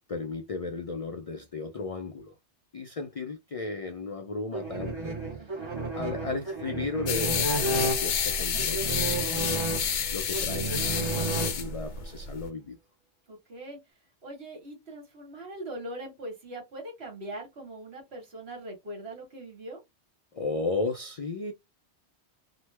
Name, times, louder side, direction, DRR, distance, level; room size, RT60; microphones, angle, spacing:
voice 1, 0.1-2.3 2.7-5.2 5.9-9.7 10.1-12.8 20.3-21.5, left 3 dB, 55° left, 0.4 m, -35 dB
sound 1, 4.5-12.0, right 2 dB, 25° right, 0.8 m, -32 dB
voice 2, 5.4-5.8 13.3-13.8 14.2-19.8, right 1 dB, 65° right, 1.5 m, -41 dB
sound 2, 7.1-12.5, left 7 dB, 85° left, 0.9 m, -29 dB
3.0 x 2.1 x 3.2 m
omnidirectional pair, 1.1 m